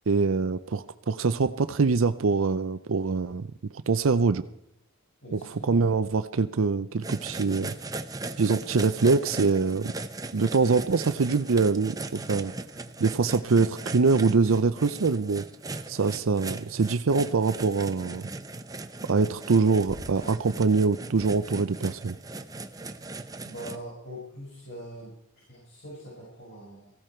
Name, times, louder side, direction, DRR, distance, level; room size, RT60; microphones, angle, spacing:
voice 1, 0.1-3.5 3.9-4.4 5.3-7.7 8.4-9.9 10.3-12.5 13.0-15.4 15.9-18.2 19.1-22.1, right 4 dB, 70° right, 11 dB, 0.6 m, -24 dB
voice 2, 5.2-5.8 23.4-26.9, equal, 60° left, -5 dB, 5.8 m, -43 dB
sound 1, 7.0-23.7, right 3 dB, 15° right, 0.8 m, -38 dB
sound 2, 19.8-20.6 21.1-22.0, left 1 dB, 40° left, 1.4 m, -47 dB
17.0 x 15.5 x 4.5 m, 0.75 s
head